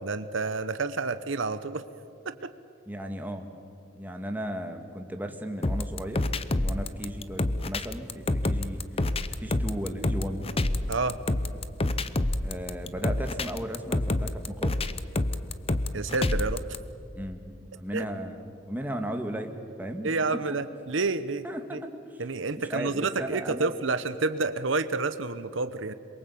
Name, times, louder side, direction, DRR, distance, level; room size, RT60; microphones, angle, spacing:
voice 1, 0.0-1.8 2.2-2.5 10.9-11.2 15.9-16.6 17.9-18.1 20.0-21.4 21.7-21.8 22.2-25.9, right 3 dB, 75° right, 12 dB, 0.9 m, -29 dB
voice 2, 2.9-3.5 3.9-6.2 6.5-9.1 9.4-10.5 12.4-14.8 17.1-20.2 20.5-20.6 21.4-22.2 22.6-23.7, right 1 dB, 10° right, 4 dB, 1.9 m, -36 dB
sound 1, 5.6-16.8, left 2 dB, 30° left, 0.8 m, -28 dB
26.5 x 23.0 x 8.6 m, 2.5 s
head